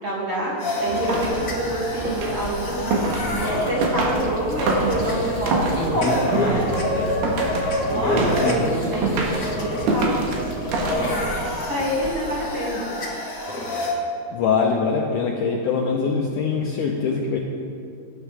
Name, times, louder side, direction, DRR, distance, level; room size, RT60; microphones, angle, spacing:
voice 1, 0.0-2.9 3.3-7.4 7.8-12.8, right 1 dB, 40° right, -6 dB, 3.0 m, -27 dB
sound 1, 0.6-13.9, left 1 dB, 75° left, 0.7 m, -27 dB
sound 2, 0.9-11.4, right 2 dB, 80° right, 3.3 m, -27 dB
voice 2, 14.3-17.4, left 5 dB, 90° left, 0 dB, 1.8 m, -23 dB
18.0 x 10.0 x 3.4 m, 2.4 s
omnidirectional pair, 4.6 m